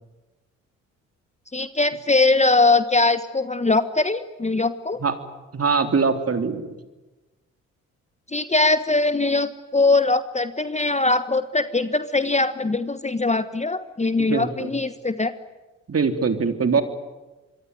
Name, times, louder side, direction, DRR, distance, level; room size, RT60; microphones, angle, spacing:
voice 1, 1.5-5.0 8.3-15.3, left 3 dB, 15° left, 12 dB, 1.4 m, -21 dB
voice 2, 5.5-6.7 14.2-14.7 15.9-16.8, right 5 dB, 35° right, 7 dB, 3.5 m, -22 dB
26.0 x 23.5 x 9.5 m, 1.1 s
hypercardioid pair, 50°, 39 cm